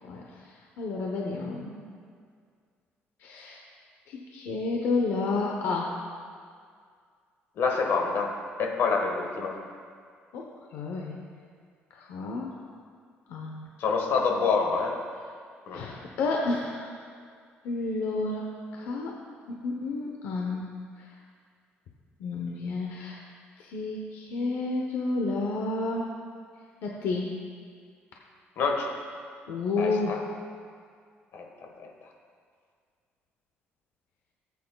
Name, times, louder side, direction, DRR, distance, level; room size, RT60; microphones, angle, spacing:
voice 1, 0.0-1.8 3.2-3.6 4.1-5.9 10.3-10.5 10.7-11.2 11.9-12.5 13.3-13.6 15.7-16.9 17.6-19.2 19.5-21.2 22.2-23.2 23.6-26.1 26.8-27.3 29.5-30.3, left 3 dB, 85° left, -1 dB, 0.9 m, -31 dB
voice 2, 7.6-8.3 8.6-9.6 13.8-15.0 15.7-15.8 28.6-29.0 29.8-30.2 31.3-31.4 31.8-31.9, left 4 dB, 70° left, 1 dB, 1.4 m, -26 dB
17.5 x 8.3 x 2.3 m, 2.1 s
cardioid pair, 130°, 4 cm